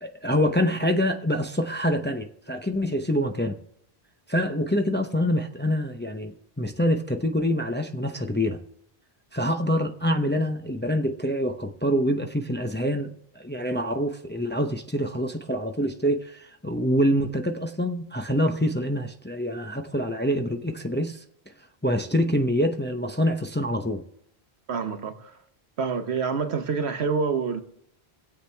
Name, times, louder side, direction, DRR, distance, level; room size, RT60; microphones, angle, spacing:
voice 1, 0.0-3.6 4.3-8.6 9.3-21.2 21.8-24.0, equal, 15° left, 0.6 m, -26 dB
voice 2, 24.7-25.3 25.8-27.6, right 5 dB, 85° right, 1.3 m, -27 dB
24.5 x 8.1 x 3.4 m
omnidirectional pair, 1.1 m